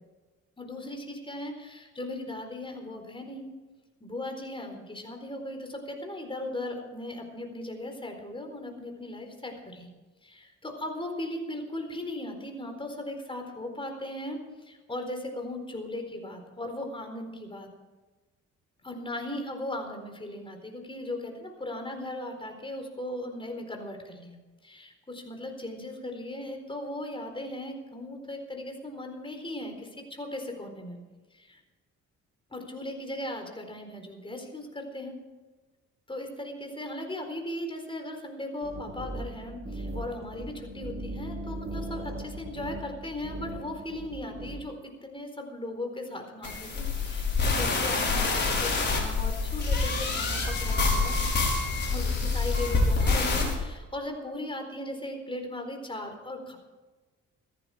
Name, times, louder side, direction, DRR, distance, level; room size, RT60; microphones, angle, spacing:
voice 1, 0.6-3.5 4.0-9.9 10.2-17.7 18.8-31.0 31.3-31.6 32.5-35.2 36.1-51.2 51.9-56.6, left 1 dB, 15° left, 4 dB, 4.2 m, -38 dB
sound 1, 38.6-44.6, right 1 dB, 45° right, 4.4 m, -38 dB
sound 2, 46.4-53.5, left 3 dB, 35° left, 5.7 m, -26 dB
16.0 x 14.0 x 5.0 m, 1.2 s
cardioid pair, 90°, 30 cm